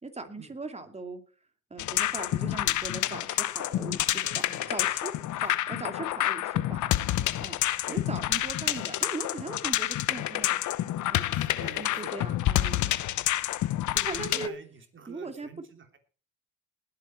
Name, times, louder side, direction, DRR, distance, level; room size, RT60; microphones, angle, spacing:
voice 1, 0.0-1.2 1.7-4.2 4.7-5.1 5.4-6.8 7.4-7.6 7.9-10.6 11.1-11.2 11.8-12.9 14.1-14.5 15.1-15.5, right 3 dB, 20° right, 7 dB, 2.6 m, -39 dB
sound 1, 1.8-14.5, left 13 dB, 75° left, 0.8 m, -28 dB
voice 2, 4.2-4.9 5.3-5.5 7.9-8.0 11.3-12.1 12.5-12.9 13.9-16.0, right 5 dB, 40° right, 6 dB, 3.3 m, -47 dB
19.5 x 8.6 x 4.4 m, 0.38 s
cardioid pair, 90°, 30 cm